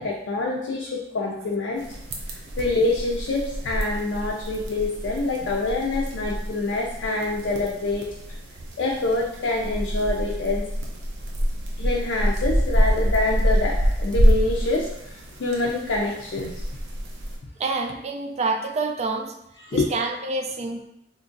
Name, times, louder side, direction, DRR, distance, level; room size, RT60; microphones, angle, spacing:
voice 1, 0.0-1.9 2.3-8.1 8.8-10.7 11.8-16.6 19.7-19.9, left 2 dB, 75° left, -2 dB, 0.5 m, -26 dB
sound 1, 1.8-17.4, equal, 85° right, 0.6 m, -26 dB
voice 2, 17.6-19.3 19.7-20.8, right 3 dB, 35° right, 5 dB, 0.4 m, -27 dB
2.9 x 2.5 x 3.8 m, 0.81 s
head